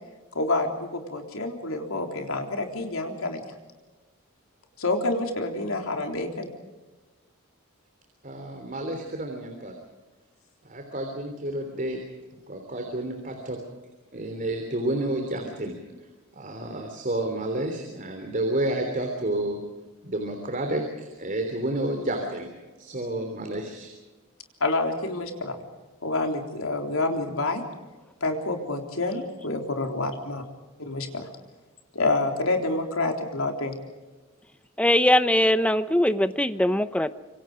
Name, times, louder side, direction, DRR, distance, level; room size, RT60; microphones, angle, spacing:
voice 1, 0.3-3.4 4.8-6.5 24.6-25.6 26.0-27.6 28.2-30.4 30.8-31.3 31.9-33.7, left 2 dB, 75° left, 3 dB, 3.7 m, -28 dB
voice 2, 8.2-9.7 10.6-12.0 12.5-13.6 14.1-15.8 16.3-19.6 20.0-22.5 22.8-23.9, right 1 dB, 40° right, 4 dB, 3.3 m, -30 dB
voice 3, 34.8-37.1, left 1 dB, 5° left, 11 dB, 0.8 m, -21 dB
26.5 x 24.5 x 5.1 m, 1.2 s
head